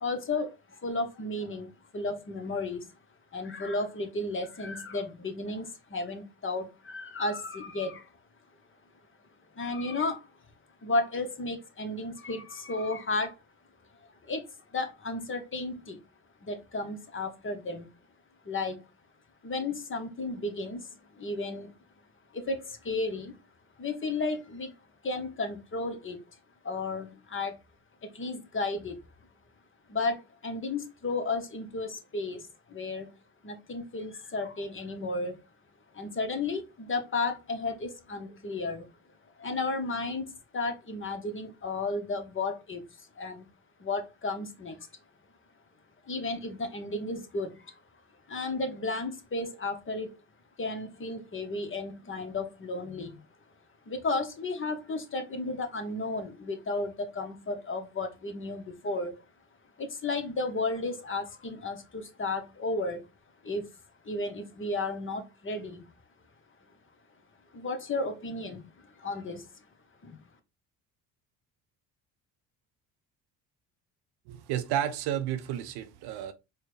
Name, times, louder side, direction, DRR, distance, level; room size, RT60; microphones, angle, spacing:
voice 1, 0.0-2.9 3.3-8.1 9.5-10.3 10.8-13.3 14.2-16.0 16.4-17.9 18.4-18.8 19.4-21.7 22.3-23.4 23.8-24.7 25.0-26.2 26.6-27.6 28.0-29.0 29.9-33.1 33.4-35.4 35.9-38.9 39.4-43.5 43.8-44.9 46.0-47.8 48.3-50.2 50.6-53.2 53.9-59.2 59.8-63.0 63.4-63.7 64.0-65.9 67.5-69.5 70.0-70.2, left 3 dB, 30° left, 1.0 m, -33 dB
voice 2, 74.3-76.3, right 11 dB, 65° right, 0.7 m, -31 dB
4.5 x 2.3 x 3.1 m
hypercardioid pair, 65°, 41 cm